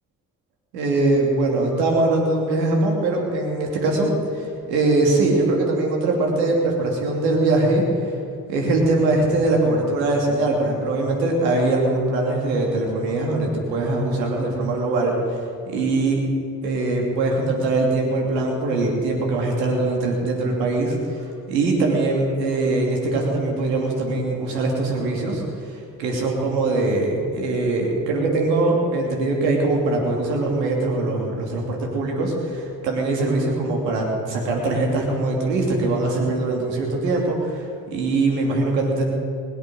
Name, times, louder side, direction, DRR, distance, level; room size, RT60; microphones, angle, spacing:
voice 1, 0.7-8.2 8.5-15.4 15.7-16.2 16.6-39.1, right 2 dB, 80° right, 0 dB, 3.0 m, -22 dB
21.0 x 8.1 x 6.4 m, 2.5 s
hypercardioid pair, 50°, 49 cm